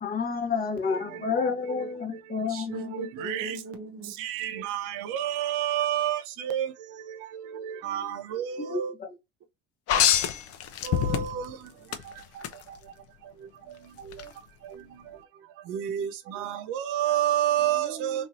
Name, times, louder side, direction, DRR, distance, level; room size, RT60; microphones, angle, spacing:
voice 1, 0.0-2.9 8.6-9.1, left 5 dB, 25° left, 0.9 m, -30 dB
voice 2, 1.0-1.9 2.4-4.1 17.6-18.3, right 2 dB, 40° right, 1.1 m, -40 dB
voice 3, 4.2-4.8 5.1-6.2 6.4-6.7 7.9-8.9 10.9-11.3 15.7-16.1 16.7-18.2, right 11 dB, 60° right, 0.7 m, -28 dB
sound 1, 9.9-11.5 11.9-12.5 14.1-14.2, left 9 dB, 45° left, 0.6 m, -24 dB
3.1 x 2.6 x 2.6 m
hypercardioid pair, 85°, 35 cm